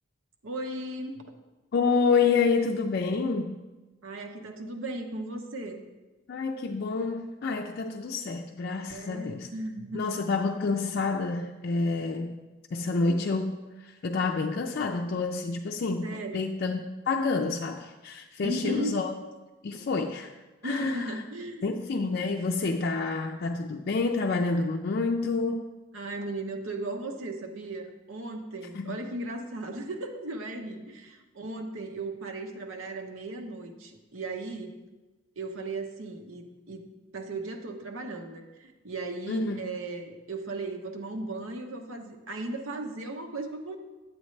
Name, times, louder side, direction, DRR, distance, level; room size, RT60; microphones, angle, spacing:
voice 1, 0.4-1.2 4.0-5.8 8.9-10.0 16.0-16.5 18.4-19.0 20.6-21.8 25.9-34.7 35.4-36.8 37.1-43.8, right 2 dB, 75° right, 3 dB, 1.0 m, -36 dB
voice 2, 1.7-3.6 6.3-9.5 9.9-12.4 12.7-16.8 17.1-19.1 19.6-20.3 20.6-21.2 21.6-25.7 28.7-29.0 39.3-39.8, left 4 dB, 50° left, 2 dB, 0.4 m, -28 dB
9.2 x 7.9 x 3.2 m, 1.2 s
head